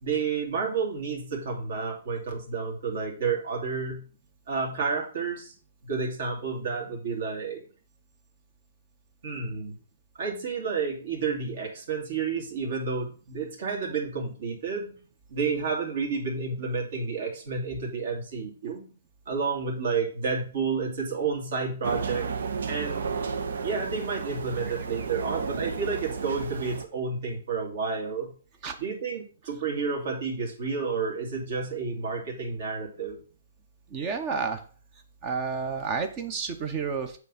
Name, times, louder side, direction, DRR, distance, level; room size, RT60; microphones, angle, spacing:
voice 1, 0.0-4.0 4.5-5.5 5.8-7.6 9.2-9.8 10.2-15.0 15.3-18.8 19.3-22.3 22.7-23.1 23.6-28.3 28.8-33.2, right 5 dB, 50° right, 0 dB, 2.5 m, -30 dB
sound 1, 21.8-26.8, right 5 dB, 70° right, 0.8 m, -32 dB
voice 2, 33.9-34.6 35.2-37.2, right 5 dB, 20° right, 7 dB, 0.8 m, -30 dB
8.1 x 3.5 x 5.8 m, 0.40 s
hypercardioid pair, 170°, 0 cm